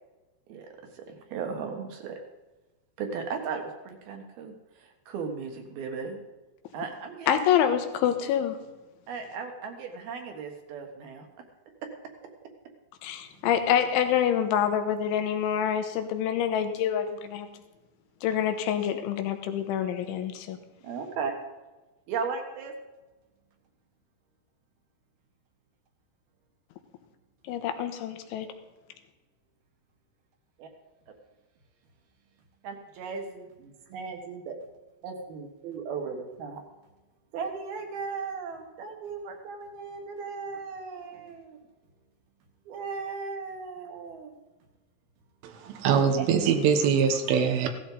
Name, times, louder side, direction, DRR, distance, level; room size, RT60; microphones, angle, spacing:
voice 1, 0.9-2.2 3.0-4.5 4.8-6.2 6.7-7.3 9.1-11.3 11.8-11.9 20.8-21.4 22.1-22.7 30.6-30.7 32.6-34.6 35.0-36.6 37.3-41.6 42.7-44.3 46.2-46.3, right 5 dB, 65° right, 4 dB, 3.0 m, -36 dB
voice 2, 7.3-8.6 13.0-17.5 18.2-20.6 27.5-28.5, left 9 dB, 80° left, 7 dB, 3.5 m, -26 dB
voice 3, 45.4-47.7, right 6 dB, 85° right, 5 dB, 3.7 m, -23 dB
16.5 x 13.0 x 4.0 m, 1.1 s
omnidirectional pair, 5.5 m